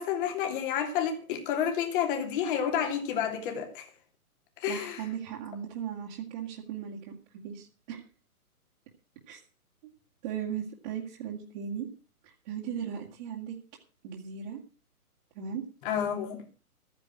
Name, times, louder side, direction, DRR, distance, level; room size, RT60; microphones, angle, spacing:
voice 1, 0.0-3.9 4.6-5.0 15.8-16.4, left 8 dB, 35° left, 4 dB, 3.0 m, -30 dB
voice 2, 4.7-8.0 9.3-9.4 10.2-11.9 12.2-13.6 14.0-14.6 15.3-15.6, right 8 dB, 30° right, -4 dB, 2.4 m, -37 dB
13.5 x 9.8 x 6.0 m, 0.36 s
hypercardioid pair, 140°, 45 cm